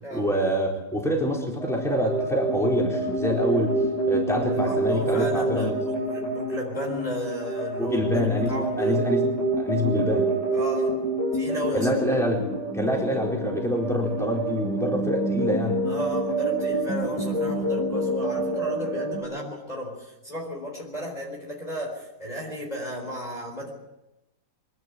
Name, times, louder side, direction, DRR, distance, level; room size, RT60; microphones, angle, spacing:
voice 1, 0.1-3.8 4.0-5.7 7.8-10.3 11.7-12.5 12.7-15.8, equal, ahead, -2 dB, 4.3 m, -26 dB
sound 1, 1.6-19.2, right 2 dB, 85° left, 6.4 m, -27 dB
voice 2, 4.4-8.1 8.5-9.0 10.5-11.0 11.3-11.9 15.8-23.7, equal, 25° left, -1 dB, 4.1 m, -34 dB
24.0 x 12.5 x 9.1 m, 1.0 s
omnidirectional pair, 1.7 m